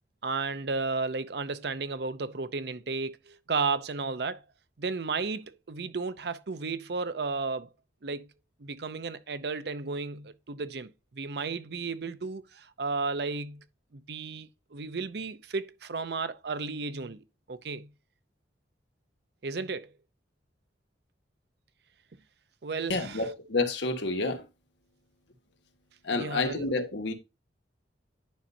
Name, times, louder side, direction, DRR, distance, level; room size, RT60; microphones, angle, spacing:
voice 1, 0.2-4.4 4.8-7.7 8.0-8.3 8.6-13.6 13.9-17.2 17.5-17.9 19.4-19.9 22.6-23.3 26.1-26.7, right 4 dB, 60° right, 0.6 m, -33 dB
voice 2, 22.9-24.4 26.0-27.1, left 3 dB, 70° left, 1.2 m, -29 dB
10.5 x 5.5 x 2.7 m
head